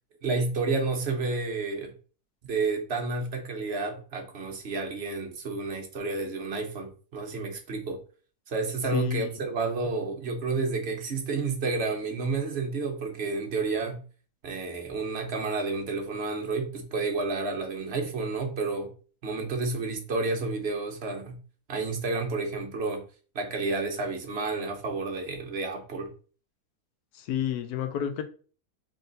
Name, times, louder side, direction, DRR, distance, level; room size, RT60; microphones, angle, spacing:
voice 1, 0.2-1.9 2.4-8.0 8.5-14.0 14.4-18.9 19.2-21.4 21.7-23.0 23.3-26.1, right 3 dB, 45° right, 1.0 m, -30 dB
voice 2, 8.9-9.3 27.1-28.2, left 10 dB, 75° left, 1.2 m, -30 dB
3.8 x 3.5 x 3.9 m
omnidirectional pair, 1.7 m